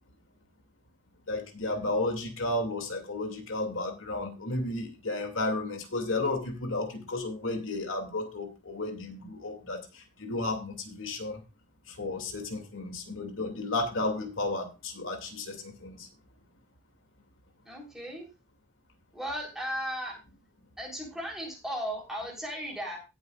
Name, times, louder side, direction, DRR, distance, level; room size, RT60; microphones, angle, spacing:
voice 1, 1.3-11.4 11.9-16.1, left 2 dB, 75° left, 4 dB, 2.5 m, -33 dB
voice 2, 17.7-18.3 19.1-20.2 20.8-23.0, equal, ahead, -2 dB, 3.8 m, -36 dB
18.0 x 7.8 x 2.5 m, 0.28 s
head